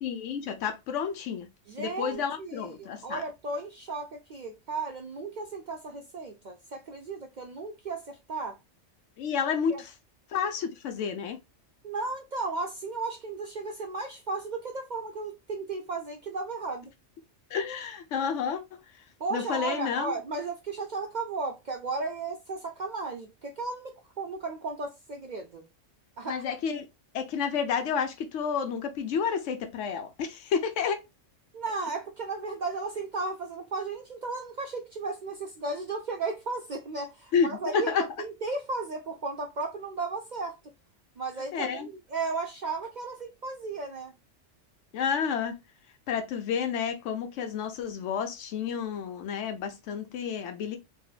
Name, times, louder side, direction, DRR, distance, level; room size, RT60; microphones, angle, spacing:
voice 1, 0.0-1.5 1.8-3.2 9.2-9.9 10.3-11.4 17.5-18.8 19.3-20.1 26.3-26.9 27.1-31.0 37.3-38.1 41.5-41.9 44.9-45.6 46.1-50.8, left 6 dB, 75° left, 1.0 m, -30 dB
voice 2, 1.7-8.6 9.7-9.8 11.8-16.9 19.2-23.9 24.2-25.6 26.2-26.4 31.5-37.9 38.2-40.6 41.2-44.1, right 3 dB, 60° right, 0.4 m, -35 dB
3.6 x 2.0 x 2.3 m
omnidirectional pair, 1.3 m